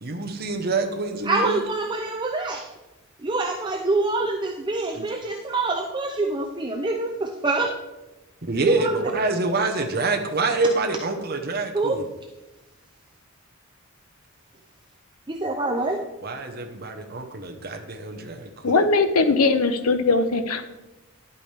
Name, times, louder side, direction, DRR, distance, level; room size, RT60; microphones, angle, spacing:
voice 1, 0.0-1.6 4.9-5.1 8.5-12.0 16.2-18.7, right 3 dB, 45° right, 4 dB, 1.0 m, -26 dB
voice 2, 1.3-2.7 3.2-7.7 8.6-9.0 11.7-12.0 15.3-16.0, right 2 dB, 20° right, 2 dB, 0.5 m, -25 dB
voice 3, 18.6-20.7, left 3 dB, 85° left, 9 dB, 0.8 m, -20 dB
10.5 x 8.4 x 3.4 m, 1.0 s
head